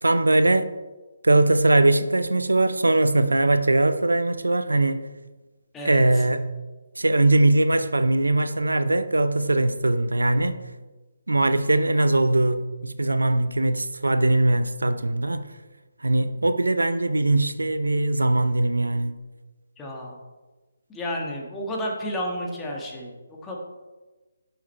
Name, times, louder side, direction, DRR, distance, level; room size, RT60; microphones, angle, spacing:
voice 1, 0.0-0.7 1.2-5.1 5.8-6.5 7.0-10.6 11.3-15.5 16.0-19.2, right 2 dB, 80° right, 0.6 m, -21 dB
voice 2, 19.8-20.2 20.9-23.6, equal, 10° left, 1.6 m, -31 dB
10.5 x 5.9 x 4.4 m
figure-of-eight pair, 145°, 0 cm